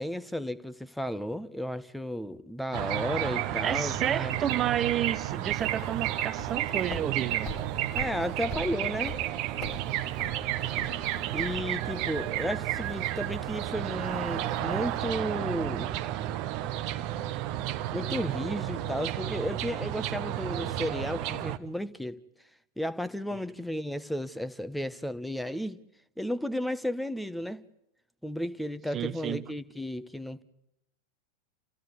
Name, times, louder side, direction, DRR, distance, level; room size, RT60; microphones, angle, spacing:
voice 1, 0.0-4.4 7.9-9.2 11.3-16.0 17.9-22.2 22.8-25.8 26.2-27.6 28.2-30.4, equal, ahead, 1.1 m, -33 dB
sound 1, 2.7-21.6, right 13 dB, 45° right, 1.2 m, -32 dB
voice 2, 3.6-7.5 23.3-23.4 28.9-29.5, right 10 dB, 25° right, 0.9 m, -31 dB
sound 2, 5.2-15.1, left 5 dB, 25° left, 1.6 m, -46 dB
29.0 x 15.5 x 9.8 m
figure-of-eight pair, 90°, 0 cm